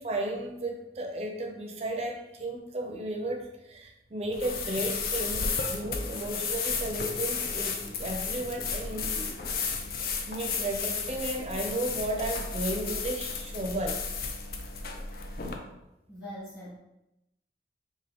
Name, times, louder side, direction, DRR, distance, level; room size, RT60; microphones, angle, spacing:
voice 1, 0.0-9.4 10.3-14.0, right 1 dB, 35° right, 1 dB, 0.5 m, -34 dB
sound 1, 4.3-15.6, left 5 dB, 55° left, 0.4 m, -33 dB
voice 2, 16.1-16.8, equal, 20° left, -11 dB, 1.4 m, -42 dB
3.7 x 2.5 x 3.4 m, 0.91 s
head